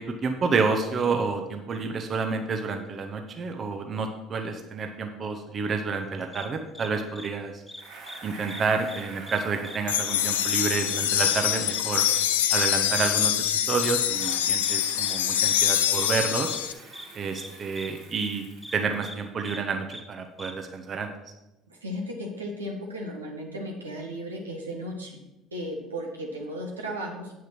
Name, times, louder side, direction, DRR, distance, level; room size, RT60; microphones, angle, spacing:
voice 1, 0.0-7.6 8.2-12.0 12.5-16.5 17.1-18.5 18.7-21.1, right 4 dB, 40° right, 5 dB, 1.1 m, -29 dB
sound 1, 6.3-6.5 6.7-6.9 7.2-7.3 7.7-8.2 8.5-8.6 8.9-9.4 9.6-9.8 10.0-10.2 10.4-10.6 10.9-11.0 11.3-11.4 11.7-11.8 12.1-12.3 12.6-12.7 13.0-13.1 13.4-13.5 13.8-13.9 14.2-14.3 14.6-14.8 15.0-15.2 15.4-15.6 16.0-16.1 16.5-16.6 16.9-17.1 17.4-17.5 17.8-17.9 18.2-18.3 18.6-18.8 19.0-19.2 19.4-19.6 19.9-20.0 20.4-20.5, left 1 dB, 5° left, 1.4 m, -41 dB
Bicycle, 7.7-13.6 14.0-19.2, right 3 dB, 70° right, 3.5 m, -46 dB
sound 2, 9.9-16.7, left 10 dB, 80° left, 0.5 m, -25 dB
voice 2, 21.7-25.2 25.5-27.3, equal, 90° right, 0 dB, 1.6 m, -35 dB
8.7 x 6.3 x 6.0 m, 0.95 s
figure-of-eight pair, 60°, 0 cm